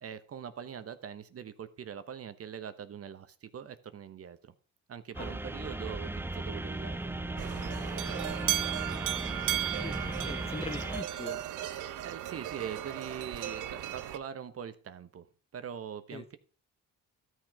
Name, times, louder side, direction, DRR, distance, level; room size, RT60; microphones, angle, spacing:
voice 1, 0.0-4.5 4.9-7.6 7.9-9.7 12.0-15.3 15.5-16.4, right 8 dB, 50° right, 1.1 m, -43 dB
sound 1, 5.1-11.0, right 2 dB, 5° right, 0.6 m, -37 dB
sound 2, 7.4-14.2, right 13 dB, 80° right, 0.9 m, -35 dB
voice 2, 9.8-11.4 16.1-16.2, left 3 dB, 20° left, 1.1 m, -41 dB
13.0 x 6.3 x 4.8 m
cardioid pair, 90°, 30 cm